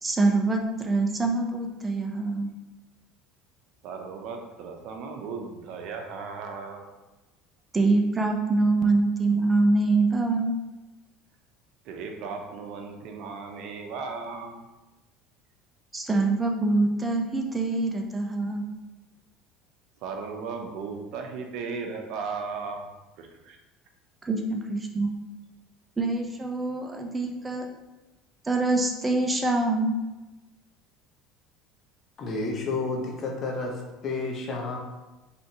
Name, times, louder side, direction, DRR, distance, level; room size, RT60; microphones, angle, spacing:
voice 1, 0.0-2.5 7.7-10.5 15.9-18.6 24.2-25.1 26.0-27.7 28.4-30.0, right 2 dB, 20° right, 2 dB, 0.7 m, -25 dB
voice 2, 3.8-6.8 11.9-14.6 20.0-22.8 23.2-23.6, right 5 dB, 65° right, 3 dB, 0.8 m, -36 dB
voice 3, 32.2-34.8, left 3 dB, 45° left, 0 dB, 1.1 m, -31 dB
5.2 x 3.4 x 3.0 m, 1.1 s
supercardioid pair, 100°, 0 cm